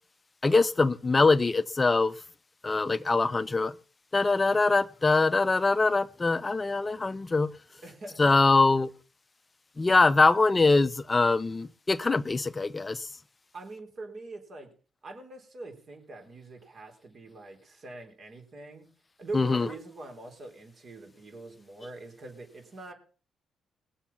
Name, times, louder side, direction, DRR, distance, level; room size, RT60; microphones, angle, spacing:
voice 1, 0.4-2.1 2.6-3.7 4.1-7.5 8.2-8.9 9.8-13.1 19.3-19.7, left 3 dB, 25° left, 0.5 m, -23 dB
voice 2, 7.8-8.2 13.5-14.7 15.0-18.9 19.2-22.9, right 2 dB, 50° right, 3.8 m, -43 dB
20.5 x 7.1 x 5.7 m
cardioid pair, 90°, 0 cm